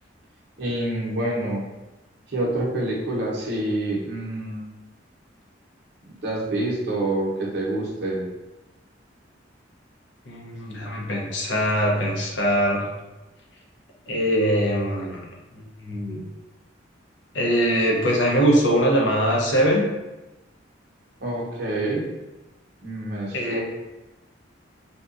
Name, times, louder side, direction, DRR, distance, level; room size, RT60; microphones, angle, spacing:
voice 1, 0.6-1.7 2.3-4.7 6.0-8.3 21.2-22.0 22.8-23.6, right 1 dB, 60° right, -4 dB, 0.7 m, -27 dB
voice 2, 10.3-12.9 14.1-15.2 15.8-16.2 17.3-19.9 23.3-23.6, equal, 70° left, -2 dB, 0.6 m, -22 dB
2.7 x 2.2 x 2.5 m, 1.0 s
head